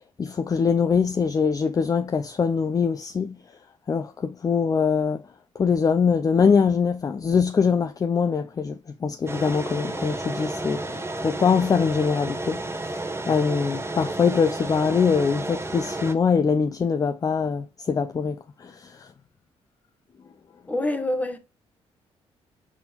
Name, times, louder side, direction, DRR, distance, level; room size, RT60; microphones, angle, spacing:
voice 1, 0.0-3.4 3.9-5.2 5.6-19.1, left 6 dB, 30° left, 0.4 m, -23 dB
sound 1, 9.3-16.1, right 2 dB, 20° right, 0.9 m, -32 dB
voice 2, 20.7-21.4, left 1 dB, 15° left, 1.0 m, -26 dB
4.1 x 3.6 x 2.9 m
supercardioid pair, 60°, 12 cm